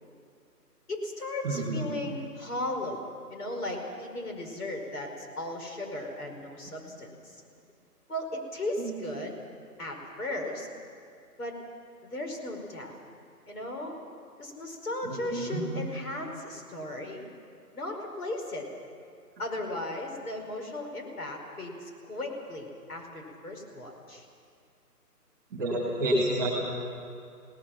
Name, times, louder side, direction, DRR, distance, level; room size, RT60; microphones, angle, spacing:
voice 1, 0.9-7.4 8.1-9.4 9.8-10.7 11.4-11.6 12.0-12.9 13.5-14.0 14.4-17.3 17.7-18.7 19.4-24.3, left 1 dB, 65° left, 2 dB, 5.2 m, -36 dB
voice 2, 1.4-1.8 8.8-9.0 15.0-15.6 25.5-26.5, right 1 dB, 10° right, -2 dB, 2.2 m, -29 dB
28.0 x 18.5 x 5.9 m, 2.4 s
hypercardioid pair, 175°, 48 cm